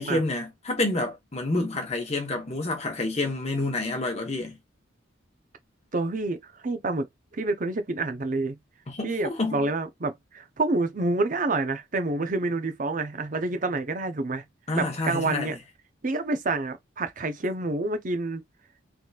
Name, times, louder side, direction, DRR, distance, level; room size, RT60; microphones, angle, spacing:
voice 1, 0.0-4.6 8.9-9.7 14.7-15.5, left 2 dB, 35° left, 1.1 m, -28 dB
voice 2, 5.9-7.1 7.3-8.6 9.0-14.4 14.7-15.6 16.0-18.4, right 2 dB, 40° right, 0.6 m, -28 dB
3.5 x 3.0 x 2.4 m
head